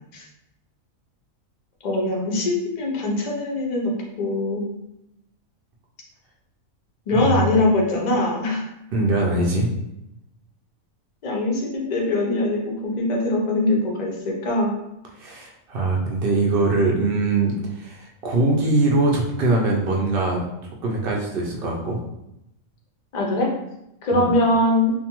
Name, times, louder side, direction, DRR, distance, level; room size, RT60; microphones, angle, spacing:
voice 1, 1.8-3.9 4.2-4.7 7.1-8.6 11.2-14.7 23.1-23.5 24.0-24.9, left 2 dB, 50° left, -1 dB, 0.5 m, -22 dB
voice 2, 7.1-7.5 8.9-9.7 15.2-20.4 20.8-22.0 24.1-24.3, right 2 dB, 65° right, -1 dB, 0.5 m, -22 dB
2.5 x 2.2 x 2.9 m, 0.86 s
omnidirectional pair, 1.4 m